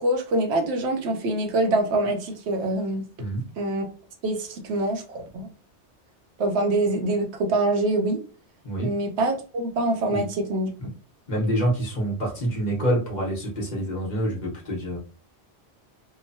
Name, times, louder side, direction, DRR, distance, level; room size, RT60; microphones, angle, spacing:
voice 1, 0.0-3.0 3.6-3.9 4.2-5.5 6.4-8.2 8.8-10.7, right 2 dB, 75° right, 3 dB, 0.9 m, -25 dB
voice 2, 11.3-15.0, right 1 dB, 45° left, -2 dB, 1.0 m, -26 dB
2.9 x 2.1 x 2.6 m, 0.36 s
omnidirectional pair, 1.2 m